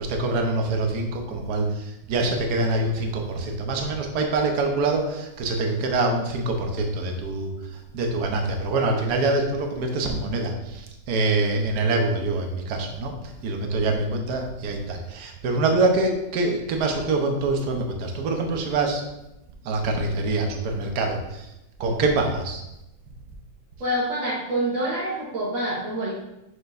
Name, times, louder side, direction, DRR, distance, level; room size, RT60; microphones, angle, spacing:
voice 1, 0.0-7.5 7.9-13.1 13.4-19.0 19.6-21.5 21.8-22.6, right 2 dB, 65° right, 2 dB, 1.4 m, -25 dB
voice 2, 23.8-26.1, right 1 dB, 80° right, -6 dB, 2.1 m, -26 dB
6.7 x 6.7 x 2.6 m, 0.88 s
omnidirectional pair, 2.0 m